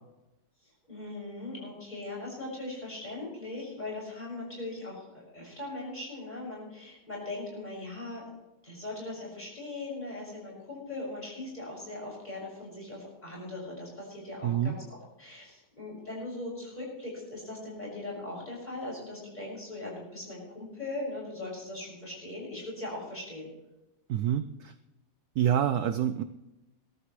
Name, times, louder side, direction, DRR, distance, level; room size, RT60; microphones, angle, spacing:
voice 1, 0.9-8.2 8.6-14.8 15.2-23.5, left 2 dB, 20° left, -3 dB, 6.9 m, -39 dB
voice 2, 14.4-14.8 24.1-24.7 25.4-26.2, right 10 dB, 70° right, 9 dB, 0.9 m, -27 dB
21.0 x 13.0 x 3.2 m, 0.97 s
omnidirectional pair, 2.2 m